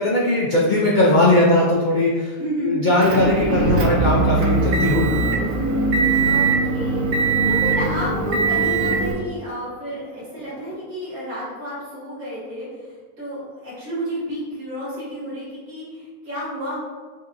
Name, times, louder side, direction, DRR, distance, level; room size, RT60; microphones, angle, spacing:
voice 1, 0.0-2.4 2.6-5.3, left 1 dB, 70° left, -4 dB, 0.4 m, -19 dB
voice 2, 2.4-2.9 6.2-7.1 7.5-16.8, equal, 80° right, -8 dB, 2.1 m, -31 dB
Motor vehicle (road) / Engine, 3.0-9.1, right 3 dB, 60° right, 0.6 m, -20 dB
5.2 x 2.8 x 2.6 m, 1.4 s
omnidirectional pair, 1.5 m